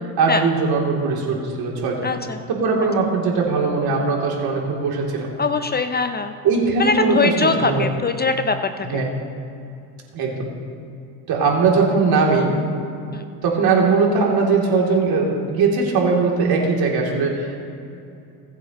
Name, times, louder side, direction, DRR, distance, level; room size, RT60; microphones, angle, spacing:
voice 1, 0.2-2.1 2.5-5.3 6.4-7.8 8.8-9.1 10.1-10.5 11.3-12.6 13.4-17.6, right 4 dB, 55° right, -1 dB, 3.1 m, -20 dB
voice 2, 2.0-2.4 5.4-6.3 6.8-9.0 13.1-13.2, left 4 dB, 20° left, 8 dB, 0.6 m, -22 dB
21.0 x 8.1 x 3.1 m, 2.6 s
hypercardioid pair, 80°, 45 cm